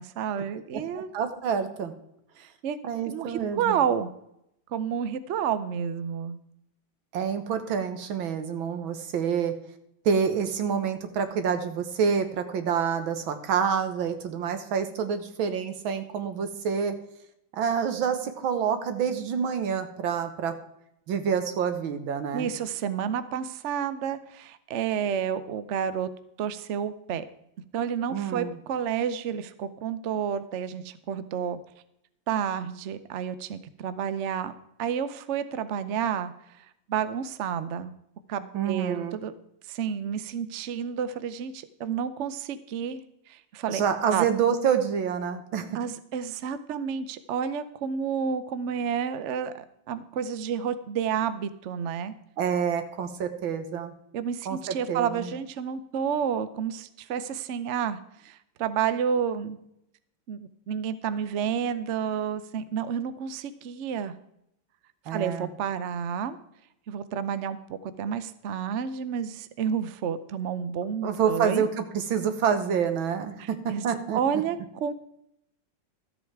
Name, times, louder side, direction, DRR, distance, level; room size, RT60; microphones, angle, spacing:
voice 1, 0.0-1.1 2.4-2.8 3.1-4.1 4.7-6.4 22.3-26.1 26.4-27.2 27.7-31.6 32.3-34.5 34.8-36.3 36.9-37.9 38.3-39.3 39.7-43.0 43.3-43.8 44.1-44.2 45.7-52.1 54.1-59.6 60.3-64.1 65.1-66.4 66.9-71.6 73.4-73.8 74.1-74.9, right 8 dB, 65° right, 13 dB, 0.7 m, -30 dB
voice 2, 0.7-1.9 2.8-3.8 7.1-9.5 10.1-17.0 17.5-20.5 21.1-22.5 28.1-28.6 38.5-39.2 43.7-45.7 52.4-53.9 54.5-55.3 65.1-65.5 71.0-74.2, right 7 dB, 85° right, 8 dB, 1.9 m, -27 dB
13.0 x 7.9 x 4.6 m, 0.78 s
omnidirectional pair, 2.1 m